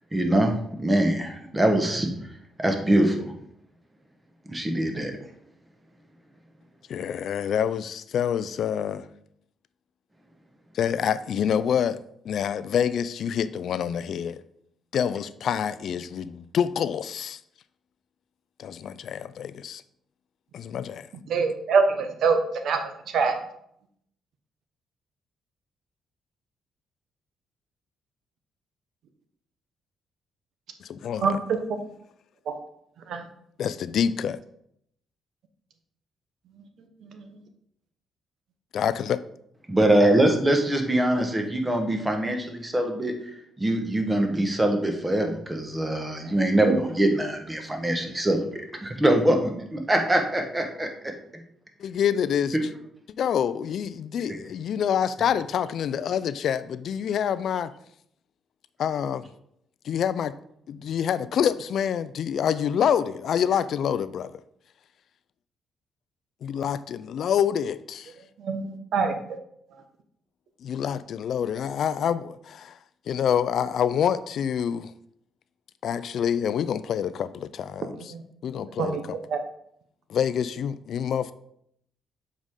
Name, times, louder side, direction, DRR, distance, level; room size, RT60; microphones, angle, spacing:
voice 1, 0.1-0.5 0.8-2.1 2.6-3.3 4.5-5.1 39.7-43.1 43.6-50.9 52.5-52.6 54.3-54.4, right 1 dB, 15° right, 1.3 m, -23 dB
voice 2, 6.9-9.1 10.7-12.0 12.3-14.4 14.9-17.4 18.6-19.8 20.5-21.1 30.8-31.4 33.6-34.4 38.7-39.2 51.8-52.6 53.2-57.7 58.8-59.3 59.9-60.3 60.7-64.3 66.4-68.1 70.6-72.8 73.1-74.9 75.8-78.1 78.4-79.2 80.1-81.3, left 8 dB, 65° left, 0.3 m, -27 dB
voice 3, 21.3-22.4 22.6-22.8 23.1-23.4 31.2-31.4 32.5-32.6 33.1-33.2 46.7-46.8 68.4-69.1 78.1-78.2 78.8-79.0 79.3-79.4, right 5 dB, 70° right, 0.9 m, -23 dB
7.4 x 4.8 x 3.7 m
cardioid pair, 90°, 0 cm